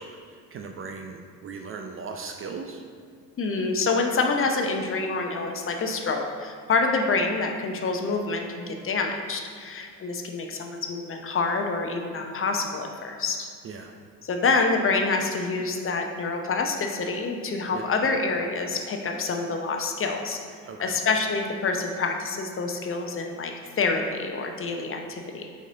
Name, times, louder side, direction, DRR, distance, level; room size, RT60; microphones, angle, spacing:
voice 1, 0.0-2.8 13.6-13.9 17.7-17.9 20.6-21.0, right 4 dB, 30° right, 3 dB, 0.5 m, -38 dB
voice 2, 3.4-13.5 14.2-20.4 20.8-25.5, left 4 dB, 30° left, 3 dB, 0.7 m, -27 dB
6.0 x 4.2 x 3.8 m, 2.2 s
hypercardioid pair, 55°, 44 cm